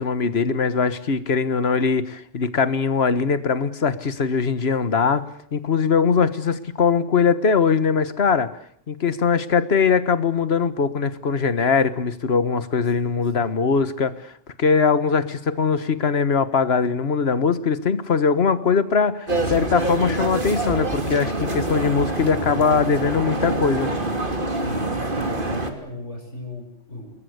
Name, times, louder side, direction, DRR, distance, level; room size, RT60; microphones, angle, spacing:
voice 1, 0.0-5.2 5.5-8.5 8.9-14.3 14.6-23.9, left 5 dB, 55° left, 13 dB, 1.7 m, -21 dB
sound 1, 19.3-25.7, right 2 dB, 40° right, 3.1 m, -26 dB
voice 2, 24.6-27.2, left 1 dB, 70° left, 1 dB, 6.7 m, -37 dB
29.0 x 21.5 x 8.1 m, 0.63 s
omnidirectional pair, 1.3 m